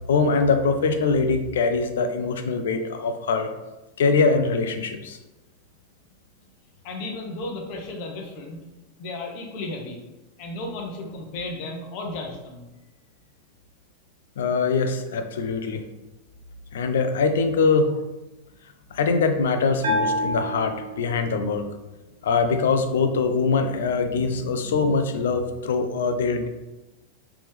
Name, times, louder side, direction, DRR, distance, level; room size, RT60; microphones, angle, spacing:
voice 1, 0.1-3.5 4.0-5.2 14.4-15.8 16.7-17.9 18.9-21.7 22.2-26.5, left 4 dB, 60° left, 7 dB, 0.4 m, -23 dB
voice 2, 6.8-8.6 9.0-10.0 10.4-12.7, left 2 dB, 45° left, 2 dB, 0.8 m, -34 dB
Bell, 19.8-21.5, equal, 60° right, 1.3 m, -27 dB
4.1 x 3.3 x 3.2 m, 1.1 s
figure-of-eight pair, 90°, 0 cm